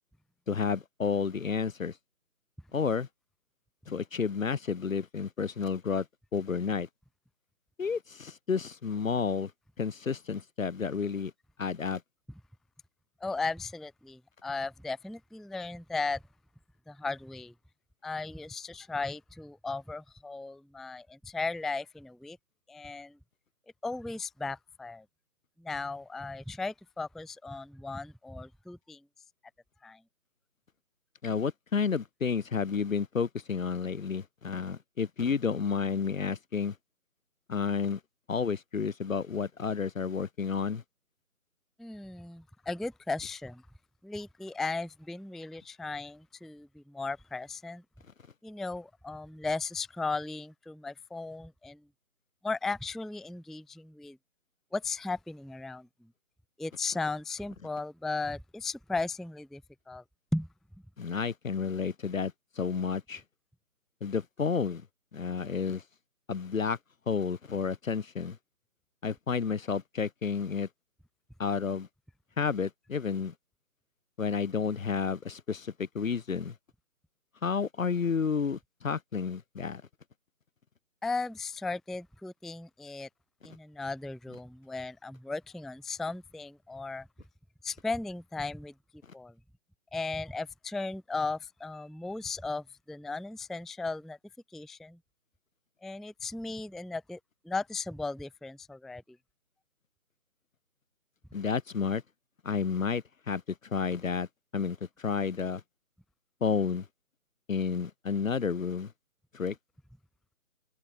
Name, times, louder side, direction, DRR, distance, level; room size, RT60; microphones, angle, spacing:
voice 1, 0.5-1.9 2.7-3.1 3.9-6.0 6.3-6.9 7.8-9.5 9.8-11.3 11.6-12.0 31.2-36.7 37.5-38.0 38.3-40.8 61.0-63.2 64.0-64.8 65.1-65.8 66.3-66.8 67.1-68.4 69.0-70.7 71.4-71.9 72.4-73.3 74.2-76.5 77.4-79.8 101.3-102.0 102.4-103.4 103.7-104.3 104.5-105.6 106.4-106.8 107.5-108.9 109.3-109.6, left 6 dB, 60° left, 0.9 m, -31 dB
voice 2, 13.2-16.2 16.9-17.5 18.0-22.4 22.7-23.2 23.8-25.1 25.6-29.0 29.8-30.0 41.8-43.6 44.0-47.8 48.4-51.9 52.4-54.2 54.7-56.1 56.6-59.6 59.9-60.0 60.3-60.5 81.0-83.1 83.4-87.1 87.6-88.7 89.1-89.3 89.9-94.2 94.5-95.0 95.8-97.2 97.4-99.2, left 3 dB, ahead, 0.4 m, -36 dB
open air
figure-of-eight pair, 170°, 44 cm